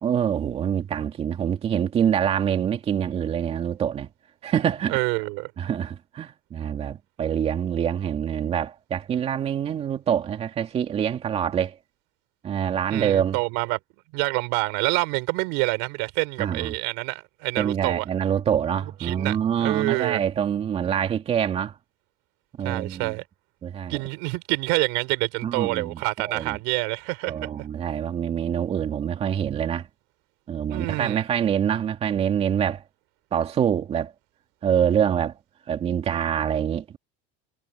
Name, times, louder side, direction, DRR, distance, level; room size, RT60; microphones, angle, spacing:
voice 1, 0.0-4.1 4.4-5.0 5.6-11.8 12.4-13.4 16.4-16.7 17.6-21.7 22.6-23.1 23.6-24.0 25.4-26.0 26.3-26.6 27.3-29.9 30.5-32.8 33.3-34.1 34.6-35.4 35.7-37.0, right 9 dB, 30° right, 2.6 m, -25 dB
voice 2, 4.9-5.5 12.9-13.8 14.1-18.1 19.0-20.2 22.6-23.2 23.9-27.5 30.7-31.2, right 28 dB, 75° right, 4.2 m, -27 dB
cardioid pair, 150°, 20 cm